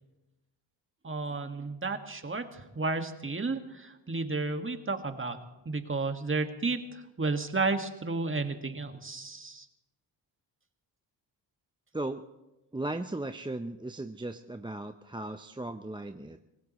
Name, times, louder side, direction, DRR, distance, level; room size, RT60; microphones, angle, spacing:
voice 1, 1.0-5.4 5.7-9.7, right 3 dB, 25° right, 6 dB, 1.8 m, -32 dB
voice 2, 12.7-16.4, right 2 dB, 10° right, 7 dB, 0.7 m, -36 dB
25.0 x 17.5 x 3.1 m, 1.0 s
cardioid pair, 65°, 46 cm